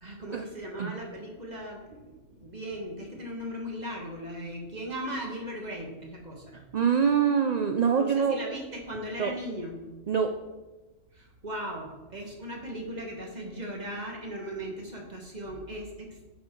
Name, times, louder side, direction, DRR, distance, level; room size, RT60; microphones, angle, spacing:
voice 1, 0.0-2.0 2.4-6.6 7.9-9.8 11.1-16.3, equal, 35° right, 0 dB, 1.4 m, -38 dB
voice 2, 6.5-8.4 9.2-9.3 10.1-10.3, right 7 dB, 65° right, 5 dB, 0.4 m, -25 dB
10.0 x 4.4 x 4.6 m, 1.1 s
omnidirectional pair, 1.3 m